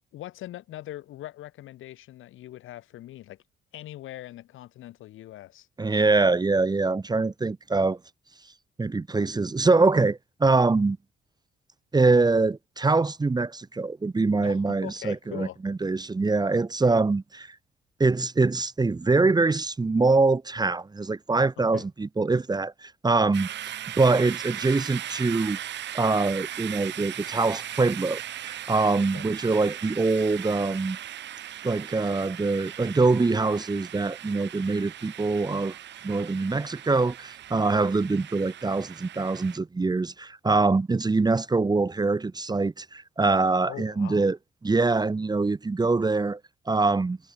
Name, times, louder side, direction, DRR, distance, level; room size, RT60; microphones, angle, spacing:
voice 1, 0.1-3.4 3.7-5.7 14.4-15.6 21.6-21.9 28.9-29.3 43.6-44.3, left 14 dB, 85° left, 6.8 m, -41 dB
voice 2, 5.8-8.0 8.8-11.0 11.9-17.5 18.0-23.5 24.0-25.6 25.9-31.0 31.6-35.7 36.0-44.4 44.6-46.4 46.7-47.2, right 3 dB, 20° right, 1.0 m, -24 dB
sound 1, 23.3-39.6, right 11 dB, 65° right, 1.1 m, -38 dB
cardioid pair, 90°, 20 cm